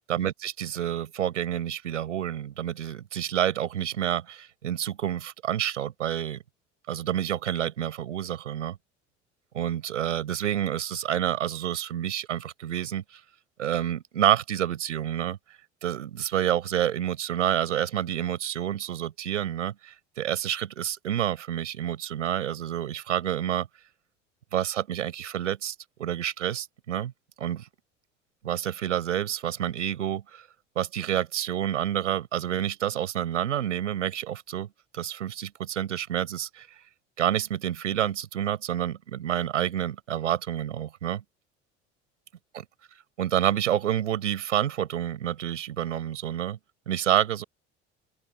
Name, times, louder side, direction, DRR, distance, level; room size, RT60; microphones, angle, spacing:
voice 1, 0.1-6.4 6.9-8.8 9.5-13.2 13.6-23.7 24.5-27.1 27.4-27.7 28.4-30.4 30.7-34.7 34.9-36.8 37.2-41.2 42.5-42.6 43.2-46.6 46.9-47.4, right 10 dB, 80° right, 5.1 m, -28 dB
open air
figure-of-eight pair, 60°, 36 cm